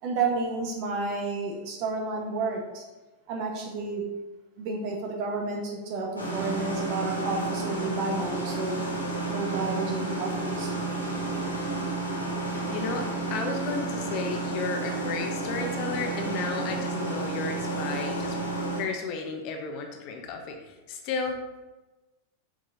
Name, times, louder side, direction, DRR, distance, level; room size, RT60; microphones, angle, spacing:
voice 1, 0.0-2.8 3.3-4.0 4.6-8.8 9.3-11.0, right 3 dB, 45° right, 0 dB, 2.0 m, -31 dB
sound 1, 6.2-18.8, right 2 dB, 80° left, 2.3 m, -31 dB
voice 2, 12.7-18.4 18.8-20.6 20.9-21.4, left 4 dB, 40° left, 4 dB, 1.2 m, -33 dB
7.8 x 6.7 x 4.0 m, 1.1 s
figure-of-eight pair, 90°, 0 cm